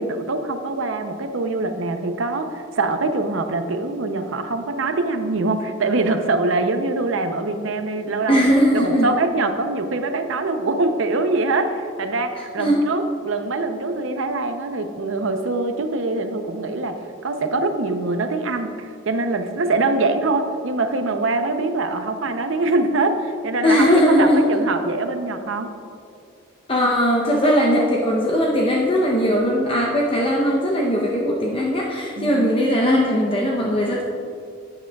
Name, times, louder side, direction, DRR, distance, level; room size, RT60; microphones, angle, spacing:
voice 1, 0.0-8.4 8.7-23.9 24.2-25.7 32.2-32.4, right 3 dB, 65° right, 7 dB, 0.6 m, -23 dB
voice 2, 8.3-9.1 12.6-12.9 23.6-24.5 26.7-34.0, equal, 25° left, -3 dB, 0.7 m, -19 dB
11.0 x 8.7 x 2.3 m, 2.4 s
head